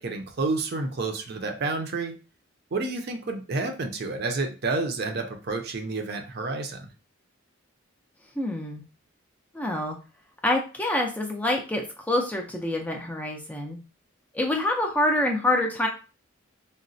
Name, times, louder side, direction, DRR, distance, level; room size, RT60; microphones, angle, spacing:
voice 1, 0.0-2.1 2.7-6.9, right 3 dB, 50° right, 5 dB, 0.5 m, -29 dB
voice 2, 8.4-8.8 9.5-10.0 10.4-13.8 14.3-15.9, left 1 dB, 5° left, 1 dB, 0.4 m, -26 dB
3.9 x 2.1 x 2.5 m, 0.33 s
head